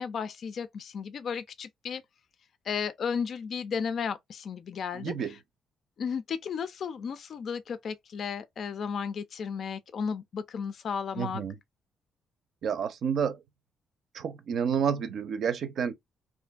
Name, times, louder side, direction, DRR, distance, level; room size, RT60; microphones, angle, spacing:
voice 1, 0.0-2.0 2.7-5.4 6.0-11.4, left 6 dB, 60° left, 0.4 m, -34 dB
voice 2, 4.9-5.3 11.2-11.6 12.6-13.4 14.1-15.9, right 7 dB, 65° right, 0.6 m, -29 dB
2.6 x 2.5 x 2.3 m
cardioid pair, 90°, 0 cm